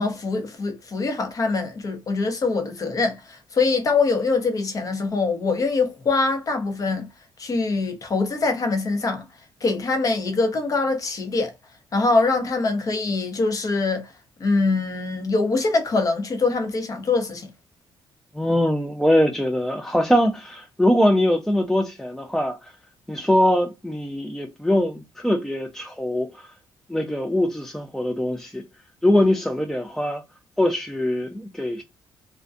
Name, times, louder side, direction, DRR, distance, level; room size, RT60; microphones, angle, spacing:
voice 1, 0.0-7.1 7.4-9.3 9.6-11.5 11.9-14.1 14.4-17.5, left 3 dB, 40° left, 0.7 m, -23 dB
voice 2, 18.4-22.7 23.1-26.5 26.9-28.6 29.0-30.2 30.6-31.8, left 1 dB, 5° left, 0.3 m, -22 dB
2.4 x 2.1 x 2.4 m
cardioid pair, 105°, 9 cm